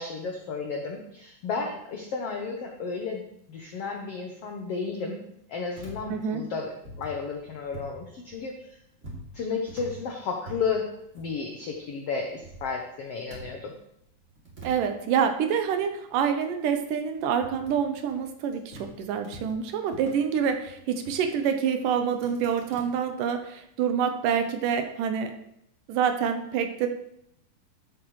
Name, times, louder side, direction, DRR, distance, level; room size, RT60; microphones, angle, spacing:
voice 1, 0.0-3.2 3.5-5.2 5.5-8.8 9.3-10.9 11.1-13.7, left 5 dB, 90° left, 2 dB, 1.3 m, -33 dB
sound 1, 5.7-8.0 8.3-11.8 12.1-13.7 14.0-18.9 19.2-22.8, right 1 dB, 20° right, 2.7 m, -46 dB
voice 2, 6.1-6.4 14.6-25.3 25.9-26.9, right 7 dB, 75° right, 6 dB, 2.2 m, -27 dB
13.5 x 8.2 x 3.2 m, 0.77 s
omnidirectional pair, 4.2 m